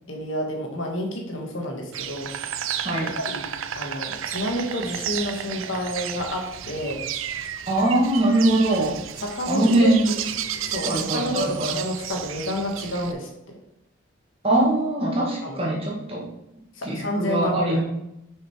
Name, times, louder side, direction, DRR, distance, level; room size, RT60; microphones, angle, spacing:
voice 1, 0.1-2.3 3.2-3.5 3.7-7.0 9.2-10.2 10.6-13.6 15.4-15.6 16.7-17.8, equal, 80° left, 1 dB, 1.8 m, -29 dB
Insect, 1.9-13.1, right 9 dB, 85° right, 0.5 m, -32 dB
voice 2, 2.8-3.1 7.7-9.0 9.5-10.1 10.9-11.8 14.4-16.2 16.8-17.8, right 1 dB, 30° right, -3 dB, 2.1 m, -22 dB
6.2 x 5.6 x 4.8 m, 0.83 s
head